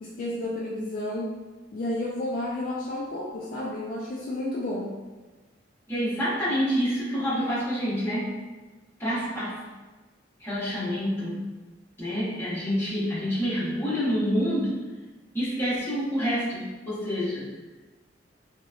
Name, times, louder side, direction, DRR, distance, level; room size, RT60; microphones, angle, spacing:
voice 1, 0.0-1.3 1.7-4.9, left 1 dB, 50° left, -5 dB, 0.3 m, -31 dB
voice 2, 5.9-8.4 9.0-9.6 10.4-11.4 12.0-14.8 15.3-17.5, equal, 15° left, -10 dB, 0.8 m, -27 dB
2.8 x 2.1 x 2.3 m, 1.2 s
head